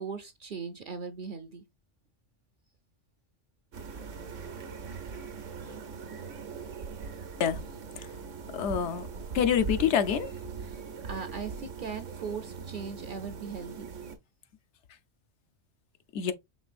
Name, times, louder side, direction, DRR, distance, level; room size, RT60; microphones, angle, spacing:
voice 1, 0.0-1.6 10.6-13.9, right 6 dB, 55° right, 0.6 m, -39 dB
sound 1, 3.7-14.2, right 5 dB, 85° right, 1.2 m, -40 dB
voice 2, 8.5-9.1 9.3-10.3 16.1-16.3, left 8 dB, 75° left, 0.9 m, -26 dB
5.3 x 3.2 x 2.4 m
omnidirectional pair, 1.2 m